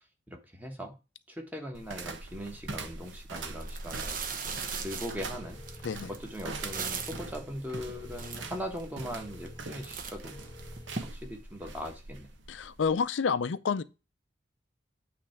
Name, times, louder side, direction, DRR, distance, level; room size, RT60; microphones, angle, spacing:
voice 1, 0.3-1.0 1.3-10.4 11.1-12.3, equal, 10° right, 1.3 m, -40 dB
sound 1, 1.7-13.0, right 3 dB, 85° right, 1.0 m, -43 dB
sound 2, 3.0-3.1 3.6-7.3 7.9-8.0 8.1-8.8 9.3-9.6 9.8-11.0, right 6 dB, 45° right, 0.9 m, -38 dB
sound 3, 5.3-11.1, left 2 dB, 20° left, 0.5 m, -50 dB
voice 2, 12.5-13.8, left 5 dB, 90° left, 0.5 m, -29 dB
8.5 x 3.3 x 5.8 m
head